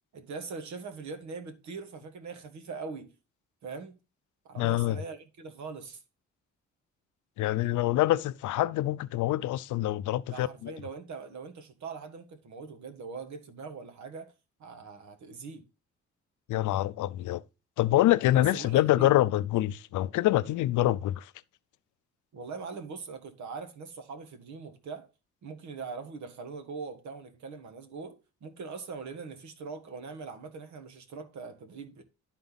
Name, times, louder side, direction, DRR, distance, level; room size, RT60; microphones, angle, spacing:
voice 1, 0.1-3.1 3.6-4.0 4.5-6.0 10.3-14.3 14.6-15.7 18.3-19.2 22.3-25.1 25.4-32.0, right 4 dB, 70° right, 1.8 m, -42 dB
voice 2, 4.6-5.0 7.4-10.7 16.5-17.4 17.8-21.3, left 15 dB, 80° left, 0.5 m, -26 dB
12.0 x 4.1 x 4.0 m
cardioid pair, 90°, 30 cm